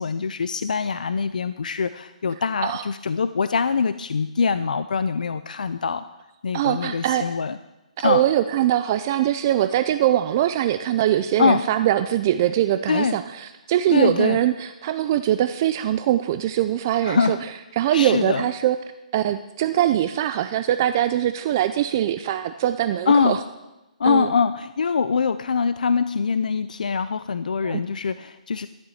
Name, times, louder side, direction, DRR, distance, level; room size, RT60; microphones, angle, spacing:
voice 1, 0.0-6.0 6.4-7.6 8.0-8.2 11.4-11.6 12.9-13.2 13.9-14.4 17.0-17.4 17.9-18.5 23.1-23.4 24.0-28.7, left 5 dB, 80° left, 13 dB, 0.5 m, -23 dB
voice 2, 6.5-7.2 8.0-17.4 17.8-18.8 19.1-23.4 24.0-24.3 27.6-27.8, right 12 dB, 25° right, 11 dB, 0.4 m, -22 dB
13.0 x 7.0 x 7.8 m, 1.0 s
hypercardioid pair, 170°, 4 cm